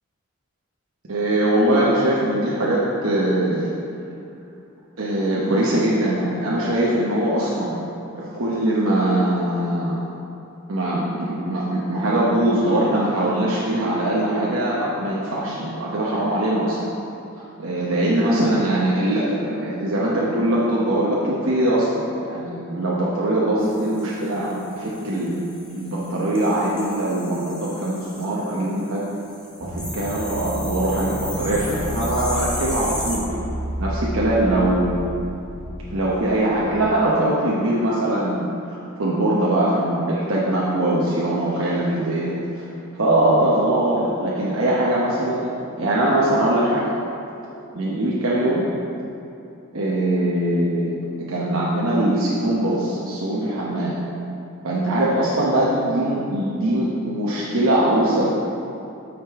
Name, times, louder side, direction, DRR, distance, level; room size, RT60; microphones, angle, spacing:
voice 1, 1.1-3.7 5.0-7.8 8.2-10.0 10.7-16.9 17.6-25.4 25.7-29.0 29.6-33.2 33.8-35.0 35.9-46.9 47.7-48.6 49.7-54.0 54.6-58.3, right 1 dB, 80° right, -6 dB, 0.9 m, -22 dB
sound 1, 23.6-33.2, equal, 5° left, 1.0 m, -36 dB
sound 2, 29.6-36.8, right 1 dB, 25° right, 0.8 m, -31 dB
8.9 x 5.2 x 3.6 m, 2.8 s
head